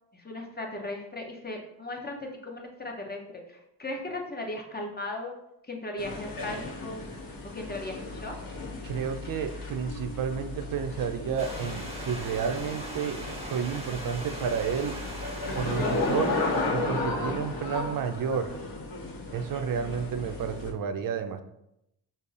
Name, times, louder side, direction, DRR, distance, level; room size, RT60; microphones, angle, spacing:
voice 1, 0.1-3.2 3.5-5.3 5.7-7.0 7.5-8.3, left 2 dB, 20° left, 1 dB, 0.8 m, -37 dB
sound 1, 6.0-20.7, left 2 dB, 45° left, 0.9 m, -34 dB
voice 2, 8.8-13.2 13.5-14.9 15.5-16.4 16.7-18.6 19.3-21.4, right 7 dB, 45° right, 8 dB, 0.5 m, -31 dB
Stream / Liquid, 11.4-16.7, equal, 15° right, 1.0 m, -40 dB
5.2 x 2.0 x 2.5 m, 0.83 s
supercardioid pair, 55°, 47 cm